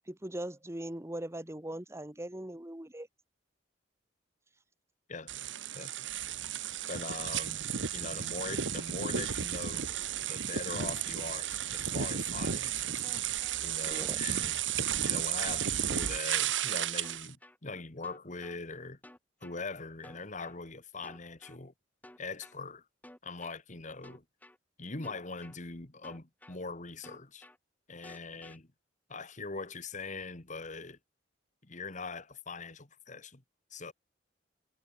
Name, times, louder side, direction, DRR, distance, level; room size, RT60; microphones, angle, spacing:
voice 1, 0.1-3.1 13.9-14.2, right 1 dB, 15° right, 1.4 m, -40 dB
sound 1, 5.3-17.3, right 9 dB, 85° right, 1.5 m, -33 dB
voice 2, 6.9-7.6 7.9-10.0 10.3-13.0 13.6-14.6 15.0-17.4 17.6-19.0 19.4-21.7 22.2-22.8 23.2-24.2 24.8-27.5 27.9-28.7 29.1-31.0 31.6-33.4 33.7-33.9, left 3 dB, 40° left, 1.9 m, -42 dB
sound 2, 13.0-13.6 14.0-14.6 15.0-15.6 16.0-16.6 17.0-17.6 18.0-18.6 19.0-19.6 20.0-20.6 21.0-21.6 22.0-22.6 23.0-23.6 24.0-24.6 25.0-25.6 26.0-26.6 27.0-27.6 28.0-28.6, left 1 dB, 10° left, 6.0 m, -53 dB
head